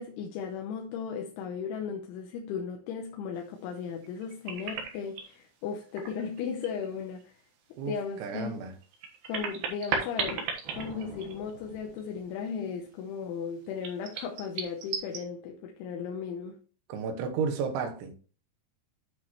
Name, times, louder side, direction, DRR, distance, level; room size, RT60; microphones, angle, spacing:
voice 1, 0.0-7.3 7.9-8.6 9.3-16.6, left 6 dB, 85° left, 3.3 m, -36 dB
sound 1, 4.0-5.3 5.8-6.9 7.2-7.3 8.7-11.7 12.0-12.1 13.8-15.2, right 5 dB, 65° right, 2.9 m, -35 dB
voice 2, 7.8-8.7 16.9-18.1, right 5 dB, 90° right, 3.5 m, -32 dB
sound 2, 10.6-12.9, right 4 dB, 45° right, 1.7 m, -49 dB
10.0 x 6.2 x 3.1 m
omnidirectional pair, 5.3 m